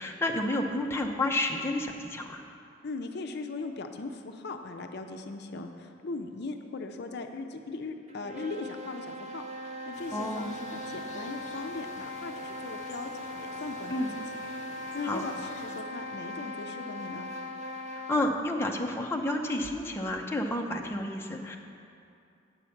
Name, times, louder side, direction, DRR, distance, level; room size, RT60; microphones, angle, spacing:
voice 1, 0.0-2.4 10.1-10.5 13.9-14.1 14.5-14.6 15.0-15.2 18.1-21.6, left 1 dB, 15° left, 1 dB, 0.6 m, -30 dB
voice 2, 2.8-9.4 9.9-14.2 14.9-17.3, left 3 dB, 60° left, 5 dB, 0.5 m, -39 dB
sound 1, 8.1-18.4, left 1 dB, 40° right, 0.7 m, -40 dB
sound 2, 9.9-15.8, left 2 dB, 40° left, 0.9 m, -49 dB
8.5 x 5.5 x 7.1 m, 2.5 s
head